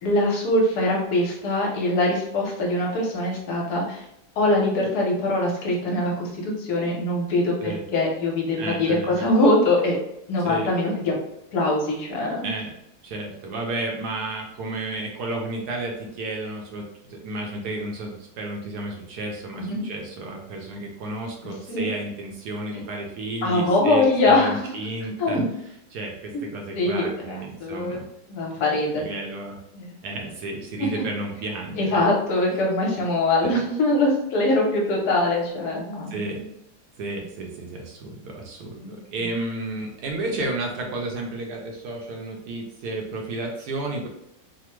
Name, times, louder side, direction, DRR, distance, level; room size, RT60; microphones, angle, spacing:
voice 1, 0.0-4.0 4.4-9.9 10.3-11.1 11.5-12.5 19.7-19.8 21.7-21.9 23.4-24.6 25.2-25.4 26.3-26.4 26.7-28.0 28.3-29.1 29.7-29.9 31.8-36.5 38.8-39.0, left 2 dB, 70° left, -2 dB, 1.2 m, -23 dB
voice 2, 8.6-9.3 10.4-10.7 12.4-12.7 13.0-25.4 25.9-28.1 28.9-29.6 30.0-32.1 33.4-33.6 36.1-36.4 37.0-44.1, right 2 dB, 70° right, 1 dB, 1.1 m, -32 dB
3.3 x 2.1 x 3.0 m, 0.80 s
omnidirectional pair, 1.9 m